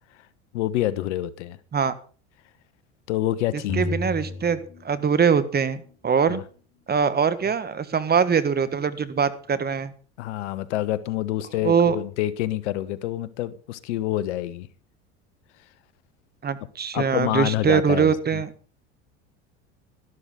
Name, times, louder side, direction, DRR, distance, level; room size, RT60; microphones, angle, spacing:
voice 1, 0.5-1.6 3.1-3.9 6.3-6.4 10.2-14.7 16.9-18.4, left 14 dB, 80° left, 1.3 m, -27 dB
voice 2, 3.5-4.6 4.8-6.4 6.9-9.9 11.6-12.0 16.4-18.5, right 6 dB, 25° right, 1.6 m, -22 dB
sound 1, 3.7-5.5, left 3 dB, 35° left, 4.1 m, -32 dB
13.0 x 12.5 x 5.2 m
hypercardioid pair, 85°, 35 cm